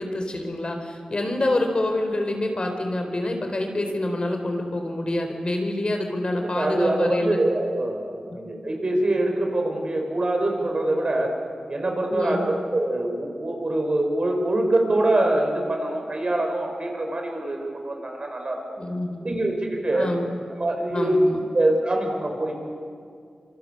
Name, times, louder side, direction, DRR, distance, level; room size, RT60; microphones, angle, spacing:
voice 1, 0.0-7.4 12.1-12.5 18.8-19.2 19.9-20.3 20.9-21.4, left 1 dB, 45° left, 4 dB, 3.9 m, -27 dB
voice 2, 6.4-11.3 11.7-18.6 19.2-20.1 20.5-21.2 21.5-22.5, right 1 dB, 45° right, 2 dB, 5.5 m, -24 dB
26.0 x 24.0 x 6.8 m, 2.2 s
cardioid pair, 50°, 2 cm